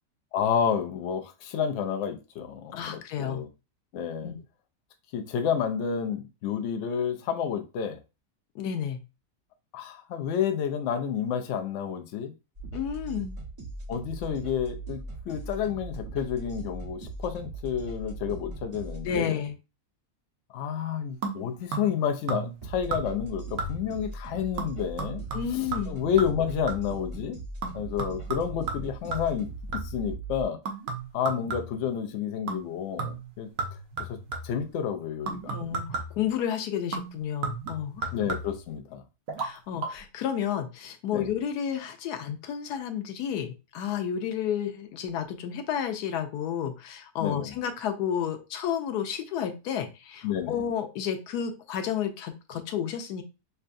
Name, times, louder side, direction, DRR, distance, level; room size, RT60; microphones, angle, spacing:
voice 1, 0.3-3.5 3.9-4.3 5.1-8.0 9.7-12.3 13.9-19.4 20.5-25.2 25.5-27.4 27.7-29.5 29.8-30.6 31.1-33.5 34.1-34.2 34.4-35.5 38.1-39.0 41.1-41.3 47.2-47.5 50.2-50.6, left 8 dB, 65° left, 0.8 m, -30 dB
voice 2, 2.7-3.4 4.2-4.4 8.5-9.0 12.7-13.4 19.0-19.6 25.3-26.0 35.5-38.1 39.4-53.2, left 8 dB, 85° left, 1.2 m, -31 dB
sound 1, 12.5-19.2 22.6-30.4, right 3 dB, 25° right, 1.2 m, -39 dB
sound 2, 21.2-22.0 22.3-22.6 22.9-23.3 23.6-24.0 24.6-27.0 27.6-30.1 30.7-31.9 32.5-32.7 33.0-34.6 35.3-36.3 36.9-38.7 39.3-39.5 39.8-39.9, right 4 dB, 65° right, 1.3 m, -35 dB
5.5 x 2.2 x 2.5 m
omnidirectional pair, 1.7 m